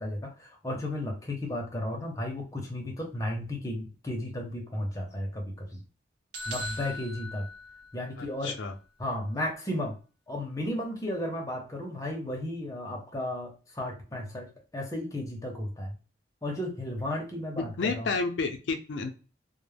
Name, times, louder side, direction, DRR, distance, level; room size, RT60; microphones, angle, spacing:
voice 1, 0.0-5.8 6.5-7.5 7.9-8.6 9.0-10.0 10.3-15.9 16.4-18.1, left 1 dB, 15° left, 1 dB, 0.6 m, -34 dB
sound 1, 6.3-8.3, left 1 dB, 70° right, 0.7 m, -39 dB
voice 2, 8.2-8.7 17.8-19.1, left 4 dB, 75° left, 5 dB, 0.4 m, -31 dB
2.2 x 2.0 x 3.2 m, 0.35 s
head